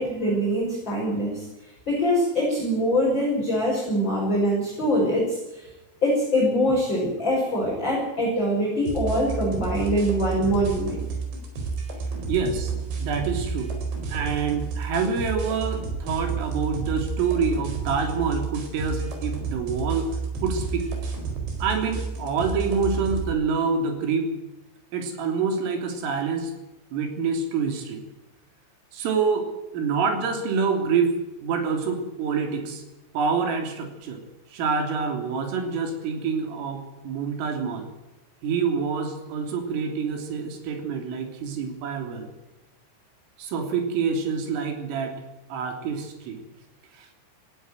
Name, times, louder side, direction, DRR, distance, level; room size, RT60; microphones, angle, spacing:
voice 1, 0.0-1.5 1.9-5.7 6.0-11.0, equal, 20° left, -4 dB, 6.6 m, -23 dB
sound 1, 8.9-23.3, right 4 dB, 60° right, 6.3 m, -31 dB
voice 2, 12.3-13.7 14.1-20.1 20.4-20.9 21.6-24.3 24.9-26.5 26.9-28.0 28.9-31.1 31.4-32.8 33.1-34.2 34.5-37.9 38.4-42.3 43.4-45.2 45.5-46.4 46.9-47.1, right 5 dB, 80° right, 5 dB, 5.9 m, -27 dB
18.5 x 16.0 x 9.3 m, 1.0 s
omnidirectional pair, 5.7 m